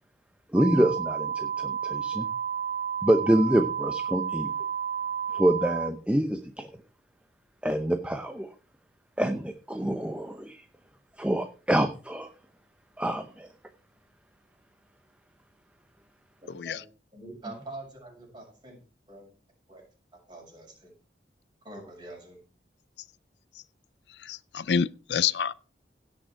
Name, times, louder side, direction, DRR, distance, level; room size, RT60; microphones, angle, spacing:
voice 1, 0.5-2.3 3.0-4.5 5.3-6.7 7.6-8.5 9.2-10.6 11.2-12.3 13.0-13.5, right 1 dB, 5° right, 0.8 m, -26 dB
sound 1, 0.5-5.9, right 8 dB, 50° right, 0.9 m, -31 dB
voice 2, 16.4-16.8 17.1-18.8 19.1-19.3 19.7-19.9 20.1-20.9 21.6-22.4, right 2 dB, 25° right, 6.5 m, -45 dB
voice 3, 24.3-25.5, left 7 dB, 70° left, 0.5 m, -27 dB
17.0 x 6.4 x 4.6 m
head